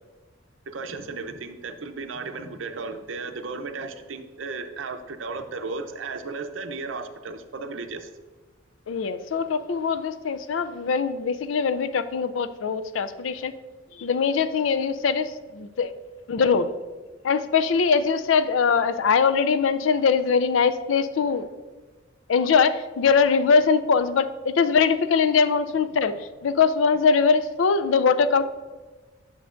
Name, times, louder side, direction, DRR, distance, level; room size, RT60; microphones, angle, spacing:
voice 1, 0.7-8.1, right 4 dB, 85° right, 8 dB, 0.6 m, -35 dB
voice 2, 8.9-13.5 14.0-15.9 16.3-16.7 17.2-21.5 22.3-26.1 26.4-28.4, left 5 dB, 90° left, 12 dB, 0.4 m, -22 dB
9.2 x 6.3 x 2.5 m, 1.3 s
head